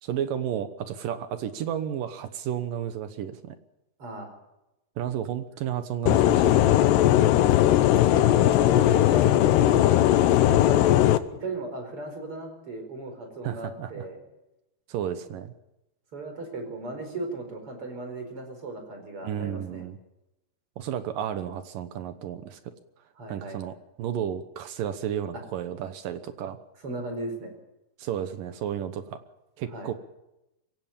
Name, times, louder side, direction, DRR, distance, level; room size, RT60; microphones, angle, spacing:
voice 1, 0.0-3.6 5.0-6.8 10.5-10.7 13.4-14.1 14.9-15.5 19.2-20.0 20.8-22.6 23.3-26.6 28.0-29.2 29.6-29.9, right 9 dB, 70° right, 11 dB, 2.4 m, -32 dB
voice 2, 4.0-4.3 7.9-10.0 10.5-11.1 11.4-14.2 16.1-19.9 23.2-23.6 25.3-25.4 26.8-27.5 29.7-29.9, right 2 dB, 35° right, 6 dB, 5.3 m, -36 dB
sound 1, 6.1-11.2, left 13 dB, 85° left, 3.1 m, -19 dB
23.5 x 17.0 x 7.3 m, 0.93 s
omnidirectional pair, 4.7 m